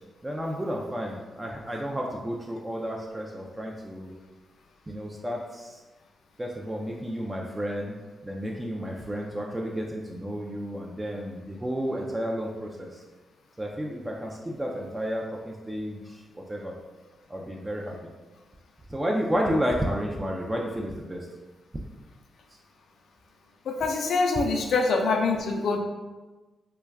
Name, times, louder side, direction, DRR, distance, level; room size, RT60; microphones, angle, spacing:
voice 1, 0.2-4.1 4.9-5.8 6.4-8.0 8.2-13.0 13.6-16.7 17.3-18.0 18.9-21.3, equal, 20° right, -1 dB, 0.4 m, -31 dB
voice 2, 23.7-25.8, left 3 dB, 75° left, 2 dB, 0.3 m, -25 dB
2.2 x 2.2 x 3.4 m, 1.2 s
supercardioid pair, 50°, 0 cm